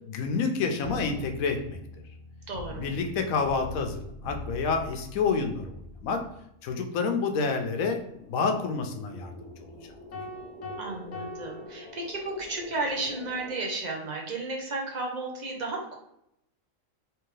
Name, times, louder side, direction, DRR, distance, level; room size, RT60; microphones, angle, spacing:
voice 1, 0.1-1.8 2.8-5.8 6.0-6.2 6.6-8.0 8.3-9.3 9.6-9.7, left 4 dB, 80° left, 5 dB, 1.1 m, -28 dB
sound 1, 0.8-6.3, left 1 dB, 70° right, 2.0 m, -43 dB
voice 2, 2.5-2.9 10.8-16.0, right 2 dB, 40° right, 0 dB, 0.7 m, -33 dB
sound 2, 7.5-13.6, left 2 dB, 5° left, 1.0 m, -47 dB
sound 3, 10.1-12.6, left 2 dB, 60° left, 1.1 m, -42 dB
3.4 x 3.1 x 3.2 m, 0.76 s
omnidirectional pair, 1.4 m